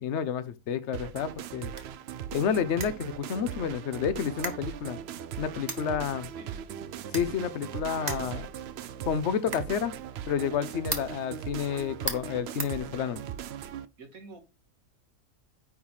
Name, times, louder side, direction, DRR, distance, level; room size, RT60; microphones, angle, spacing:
voice 1, 0.0-1.7 2.3-5.0 5.4-6.3 7.1-8.5 9.1-9.9 10.3-13.2, left 7 dB, 60° left, 1.0 m, -30 dB
sound 1, 0.9-13.9, right 9 dB, 65° right, 0.7 m, -39 dB
sound 2, 2.8-13.5, right 3 dB, 35° right, 1.1 m, -42 dB
voice 2, 6.1-6.5 14.0-14.4, right 3 dB, 85° right, 2.1 m, -48 dB
9.4 x 3.1 x 5.7 m
omnidirectional pair, 1.4 m